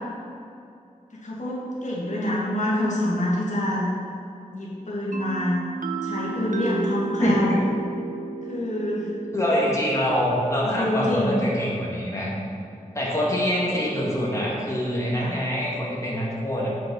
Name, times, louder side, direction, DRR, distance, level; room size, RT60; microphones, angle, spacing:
voice 1, 1.1-3.9 4.5-5.6 6.0-7.6 8.5-9.1 10.8-11.4 15.1-15.4, left 1 dB, 60° left, -7 dB, 2.0 m, -26 dB
sound 1, 5.1-12.8, right 4 dB, 70° right, 0.7 m, -34 dB
voice 2, 7.2-7.6 9.3-12.3 12.9-16.7, equal, 20° left, -6 dB, 1.9 m, -25 dB
7.7 x 5.8 x 5.5 m, 2.6 s
wide cardioid pair, 75°, 14 cm